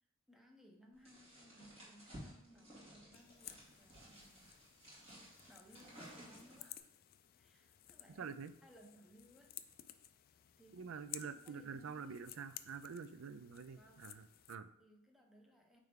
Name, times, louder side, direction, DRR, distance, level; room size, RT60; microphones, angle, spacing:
voice 1, 0.3-4.6 5.5-6.9 7.4-8.3 8.6-9.6 10.6-10.9 11.3-12.2 13.8-14.3 14.8-15.8, equal, ahead, 0 dB, 0.8 m, -63 dB
sound 1, 1.0-6.8, equal, 30° right, 2.6 m, -56 dB
sound 2, 3.1-14.6, left 12 dB, 45° left, 0.3 m, -56 dB
voice 2, 8.2-8.5 10.7-14.7, right 6 dB, 70° right, 12 dB, 0.4 m, -47 dB
9.2 x 3.3 x 3.6 m, 0.83 s
head